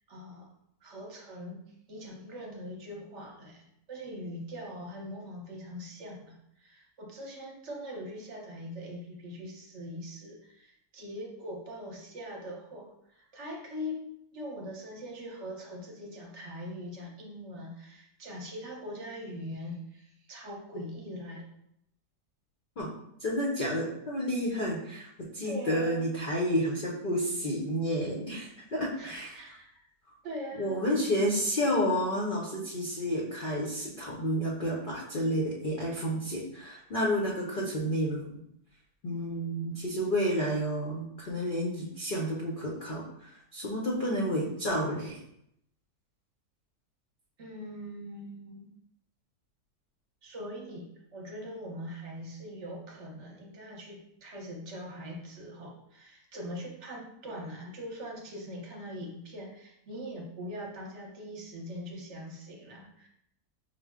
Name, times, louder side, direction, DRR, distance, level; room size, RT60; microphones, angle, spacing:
voice 1, 0.1-0.5 0.8-1.6 1.9-21.4 25.4-26.1 29.0-29.9 30.2-30.8 47.4-48.7 50.2-50.9 51.1-63.1, equal, 55° right, -1 dB, 1.0 m, -42 dB
voice 2, 23.2-25.1 25.3-29.4 30.5-38.3 39.0-45.2, equal, 50° left, -3 dB, 0.6 m, -30 dB
5.2 x 2.1 x 3.5 m, 0.76 s
omnidirectional pair, 1.7 m